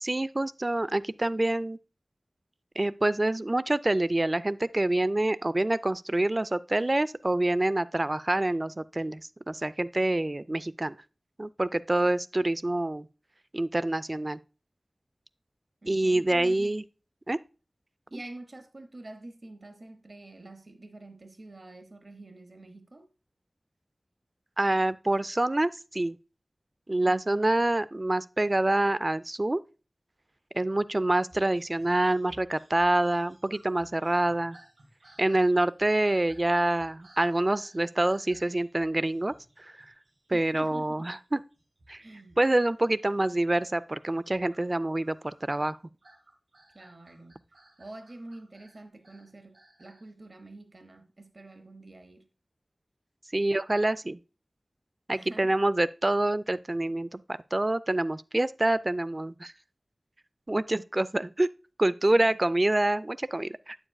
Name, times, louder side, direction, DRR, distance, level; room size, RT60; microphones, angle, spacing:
voice 1, 0.0-1.8 2.8-9.2 9.5-11.0 11.4-13.1 13.5-14.4 15.9-16.8 17.3-17.4 18.1-18.2 24.6-26.2 26.9-29.6 30.5-34.6 35.2-39.7 40.3-41.4 41.9-42.0 42.4-45.8 53.3-54.2 55.1-57.2 57.5-59.5 60.5-61.5 61.8-63.8, right 1 dB, 40° right, 0.4 m, -26 dB
voice 2, 15.8-16.7 18.1-23.1 40.3-41.1 42.0-42.4 46.7-47.5 47.8-52.3 55.1-55.6 62.1-62.2 62.5-62.7, right 2 dB, 60° right, 0.9 m, -47 dB
sound 1, 31.3-40.8 41.0-42.7 43.0-43.4 44.1-50.1, right 1 dB, 90° right, 2.9 m, -58 dB
8.7 x 7.1 x 2.3 m
wide cardioid pair, 40°, 0 cm